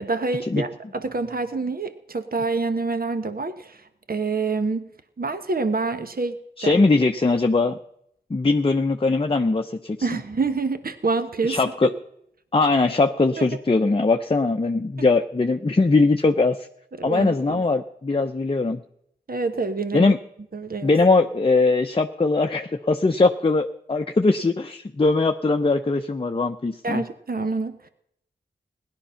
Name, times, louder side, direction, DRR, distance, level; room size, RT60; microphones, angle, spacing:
voice 1, 0.0-4.9 5.2-6.4 6.6-6.8 10.0-11.9 13.4-13.5 17.0-17.6 19.3-20.1 20.5-20.9 26.8-27.9, right 3 dB, 55° right, 9 dB, 1.1 m, -27 dB
voice 2, 6.6-7.8 8.3-10.1 11.4-11.9 12.5-16.6 17.0-18.8 19.9-20.2 20.8-27.0, left 3 dB, 30° left, 5 dB, 0.7 m, -21 dB
16.5 x 11.0 x 5.7 m, 0.75 s
cardioid pair, 40°, 18 cm